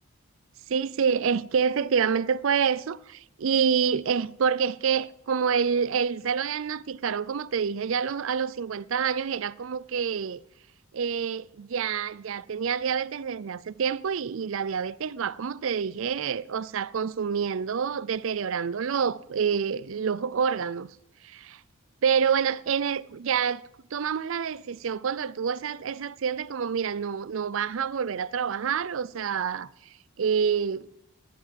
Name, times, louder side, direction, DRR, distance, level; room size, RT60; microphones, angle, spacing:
voice 1, 0.7-10.4 10.9-20.9 21.2-21.6 22.0-23.6 23.9-30.9, right 6 dB, 65° right, 0.4 m, -27 dB
12.0 x 10.5 x 7.6 m
head